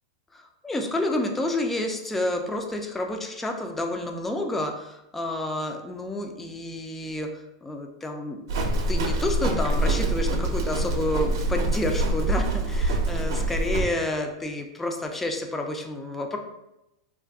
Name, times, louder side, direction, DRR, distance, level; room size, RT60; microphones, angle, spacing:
voice 1, 0.3-8.4 8.9-16.4, left 1 dB, 10° left, 3 dB, 0.3 m, -29 dB
Livestock farm animals working animals, 8.5-13.8, right 2 dB, 70° right, 0.5 m, -25 dB
2.5 x 2.4 x 3.4 m, 0.90 s
supercardioid pair, 135°, 2 cm